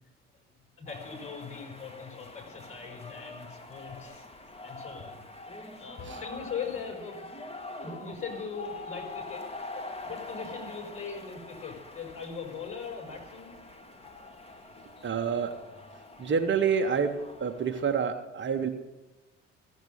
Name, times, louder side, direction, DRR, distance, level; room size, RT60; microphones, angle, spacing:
voice 1, 0.8-4.3 4.6-5.3 5.8-7.2 7.7-9.5 9.7-13.5, left 6 dB, 35° left, 2 dB, 4.7 m, -40 dB
sound 1, 0.9-18.0, left 2 dB, 15° left, 1.3 m, -44 dB
voice 2, 15.0-15.5 16.2-17.1 17.4-18.7, right 6 dB, 30° right, 5 dB, 1.0 m, -27 dB
15.0 x 7.3 x 8.0 m, 1.1 s
figure-of-eight pair, 55°, 36 cm